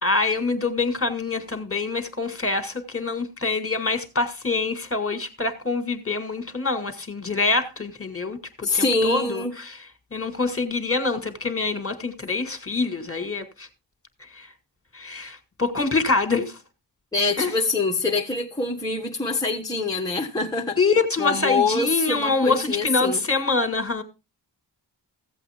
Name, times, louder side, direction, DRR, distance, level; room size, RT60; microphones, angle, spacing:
voice 1, 0.0-9.8 10.1-13.7 14.3-14.5 14.9-16.6 17.4-17.5 20.8-24.0, left 3 dB, 30° left, 2.0 m, -25 dB
voice 2, 8.6-9.5 17.1-20.8 21.2-23.2, left 3 dB, 10° left, 1.3 m, -24 dB
15.5 x 8.0 x 3.6 m
wide cardioid pair, 75°, 44 cm